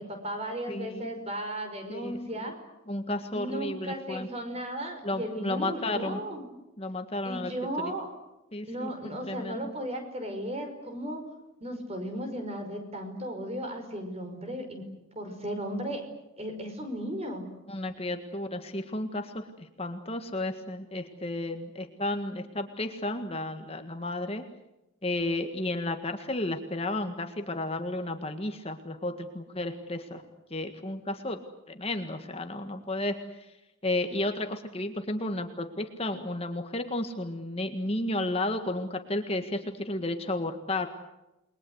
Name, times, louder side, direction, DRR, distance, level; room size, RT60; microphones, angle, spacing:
voice 1, 0.0-2.5 3.3-6.5 7.2-8.1 8.7-11.2 11.6-14.8 15.2-16.0 16.4-17.5, right 1 dB, 30° right, 6 dB, 5.4 m, -35 dB
voice 2, 0.7-1.1 1.9-2.4 2.9-4.3 5.0-6.2 6.8-7.5 7.8-7.9 8.5-8.9 9.2-9.6 17.7-24.4 25.0-30.2 30.5-31.4 31.7-33.2 33.8-40.9, left 1 dB, 30° left, 6 dB, 1.7 m, -32 dB
29.5 x 22.0 x 8.0 m, 0.93 s
head